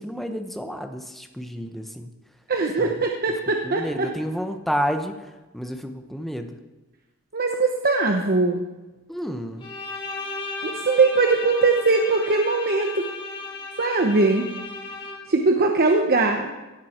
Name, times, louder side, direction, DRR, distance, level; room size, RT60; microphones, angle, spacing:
voice 1, 0.0-2.1 2.8-3.0 3.6-6.5 9.1-9.7, equal, ahead, 6 dB, 1.0 m, -30 dB
voice 2, 2.5-4.1 7.3-8.6 10.6-13.0 13.8-14.5 15.3-16.5, right 3 dB, 45° right, 3 dB, 1.0 m, -21 dB
Bowed string instrument, 9.6-15.4, left 3 dB, 25° left, 2.9 m, -35 dB
17.0 x 11.0 x 4.4 m, 1.1 s
head